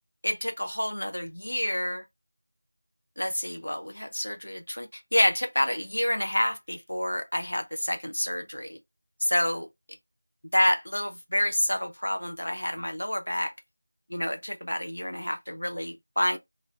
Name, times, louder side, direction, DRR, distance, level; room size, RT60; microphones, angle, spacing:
voice 1, 0.2-2.0 3.2-8.8 9.2-9.7 10.5-13.5 14.1-16.4, left 1 dB, 75° left, 0.6 m, -28 dB
3.1 x 2.5 x 2.3 m
figure-of-eight pair, 175°, 0 cm